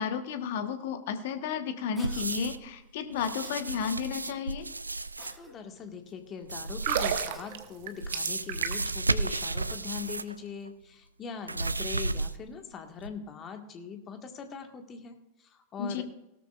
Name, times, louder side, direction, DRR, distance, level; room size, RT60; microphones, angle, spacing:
voice 1, 0.0-4.7 15.8-16.0, left 7 dB, 55° left, 8 dB, 1.3 m, -32 dB
Cough, 2.0-2.3 3.4-3.8 5.2-5.5 7.3-7.6, right 1 dB, 10° right, 2.2 m, -50 dB
sound 1, 2.0-2.7 3.1-5.4 6.4-7.5 8.0-10.4 10.7-10.8 11.5-12.6 13.0-13.1, right 3 dB, 80° right, 0.4 m, -33 dB
voice 2, 5.4-16.0, left 7 dB, 30° left, 5 dB, 1.6 m, -42 dB
sound 2, 6.7-9.0 9.3-9.5, right 9 dB, 55° right, 1.0 m, -32 dB
17.0 x 13.0 x 2.5 m, 0.88 s
figure-of-eight pair, 90°, 0 cm